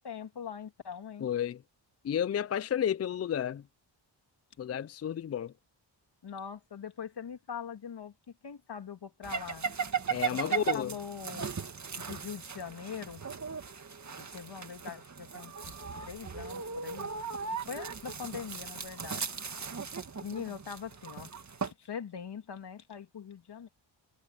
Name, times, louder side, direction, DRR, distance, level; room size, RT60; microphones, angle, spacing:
voice 1, 0.0-1.3 6.2-8.1 8.4-9.7 10.3-11.6 12.0-13.2 14.2-15.7 16.0-17.1 17.7-19.3 20.2-21.3 21.6-23.7, left 7 dB, 60° left, 3.0 m, -42 dB
voice 2, 1.2-1.6 2.0-3.6 4.6-5.5 10.1-10.9, left 9 dB, 35° left, 0.4 m, -31 dB
sound 1, 9.2-21.7, right 6 dB, 35° right, 1.9 m, -37 dB
cardioid pair, 95°, 46 cm